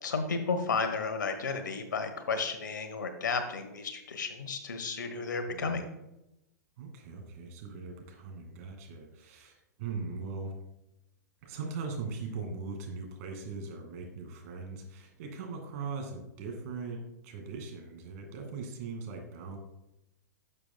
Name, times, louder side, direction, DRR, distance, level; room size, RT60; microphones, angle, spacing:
voice 1, 0.0-5.8, left 4 dB, 80° left, 8 dB, 1.2 m, -33 dB
voice 2, 5.5-5.8 6.8-10.5 11.4-19.6, right 4 dB, 55° right, 3 dB, 2.2 m, -40 dB
11.5 x 6.8 x 2.3 m, 0.88 s
hypercardioid pair, 115°, 10 cm